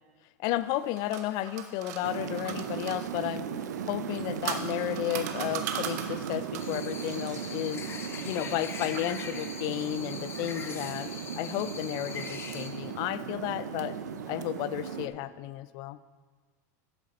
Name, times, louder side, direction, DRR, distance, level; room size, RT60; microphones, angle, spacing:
voice 1, 0.4-3.5 3.9-7.9 8.2-11.1 11.4-14.0 14.3-16.0, left 14 dB, 50° left, 16 dB, 0.4 m, -33 dB
sound 1, 0.7-3.0 4.0-6.8, right 9 dB, 70° right, 1.0 m, -38 dB
sound 2, 2.0-15.1, right 7 dB, 90° right, 0.7 m, -37 dB
sound 3, 6.6-12.7, left 5 dB, 25° left, 1.0 m, -42 dB
11.0 x 7.5 x 4.1 m, 1.4 s
hypercardioid pair, 110°, 9 cm